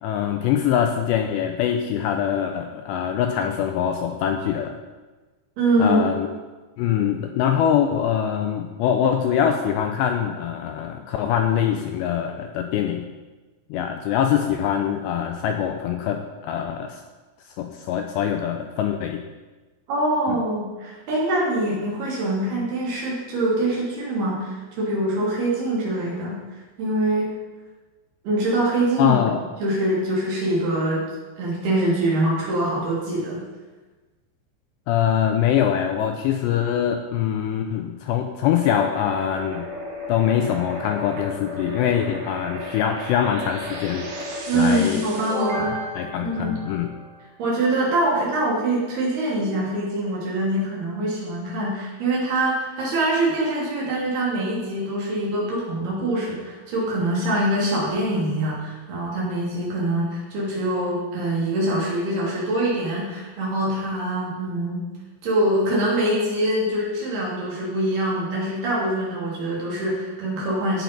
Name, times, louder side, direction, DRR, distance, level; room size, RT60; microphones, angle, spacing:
voice 1, 0.0-4.8 5.8-6.3 6.8-13.1 13.7-17.0 17.5-19.2 20.3-20.4 29.0-29.4 34.9-39.7 40.1-44.1 44.5-45.0 45.5-45.7 46.0-46.9, left 9 dB, 80° left, 5 dB, 2.6 m, -23 dB
voice 2, 5.6-6.0 19.9-26.4 26.8-27.3 28.2-29.2 29.6-31.0 31.4-33.4 44.5-45.8 46.2-46.5 47.4-64.9 65.2-70.8, right 1 dB, 60° right, -5 dB, 4.6 m, -24 dB
sound 1, 38.6-47.3, equal, 80° right, 4.1 m, -34 dB
16.5 x 5.9 x 5.3 m, 1.2 s
omnidirectional pair, 5.5 m